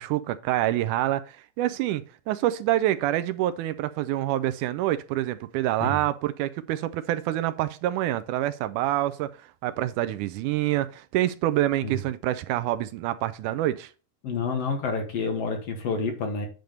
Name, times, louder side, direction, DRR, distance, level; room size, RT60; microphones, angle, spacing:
voice 1, 0.0-9.3 9.6-13.9, right 14 dB, 80° right, 2.0 m, -26 dB
voice 2, 14.2-16.5, left 4 dB, 60° left, 2.1 m, -29 dB
9.2 x 3.5 x 6.5 m
omnidirectional pair, 3.7 m